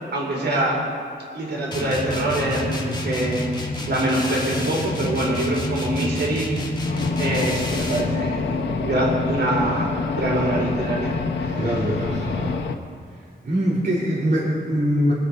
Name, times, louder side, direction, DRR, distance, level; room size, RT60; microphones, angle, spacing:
voice 1, 0.1-0.8 1.3-6.6 7.2-11.6, right 1 dB, 70° right, -3 dB, 4.7 m, -24 dB
sound 1, 1.7-8.2, left 1 dB, 25° left, 2.0 m, -29 dB
sound 2, 6.8-12.8, left 4 dB, 90° left, 1.1 m, -26 dB
voice 2, 11.5-12.6 13.4-15.1, equal, 55° right, -9 dB, 3.8 m, -23 dB
24.0 x 9.1 x 5.5 m, 2.2 s
wide cardioid pair, 110°, 18 cm